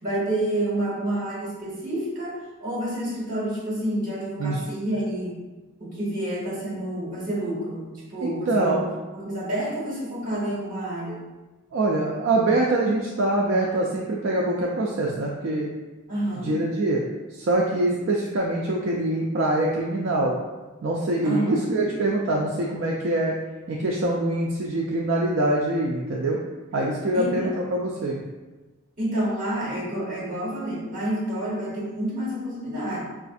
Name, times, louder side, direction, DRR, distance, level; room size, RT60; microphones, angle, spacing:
voice 1, 0.0-5.4 5.8-8.8 9.1-11.2 16.1-16.5 21.2-21.8 27.1-27.5 29.0-33.0, right 1 dB, 35° right, -6 dB, 1.3 m, -29 dB
voice 2, 8.2-8.9 11.7-15.7 16.3-17.0 17.3-20.4 20.8-23.3 23.7-26.4 26.7-28.2, right 2 dB, 60° right, -3 dB, 0.4 m, -24 dB
4.8 x 2.4 x 2.5 m, 1.2 s
head